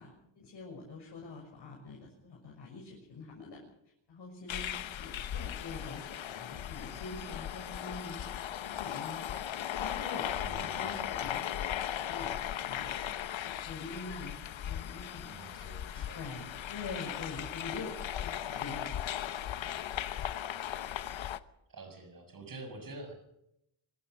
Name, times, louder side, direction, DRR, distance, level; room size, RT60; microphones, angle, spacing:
voice 1, 0.0-3.6 4.1-8.2 8.6-9.2 9.8-11.5 12.1-13.1 13.4-15.3 15.9-18.9 19.2-20.1, left 3 dB, 60° left, 0 dB, 6.6 m, -45 dB
sound 1, 4.5-21.4, left 10 dB, 75° left, 1.1 m, -37 dB
voice 2, 10.4-10.9 15.2-16.2 21.7-23.1, right 2 dB, 45° right, 6 dB, 6.6 m, -47 dB
25.0 x 16.0 x 6.7 m, 0.77 s
wide cardioid pair, 140°, 46 cm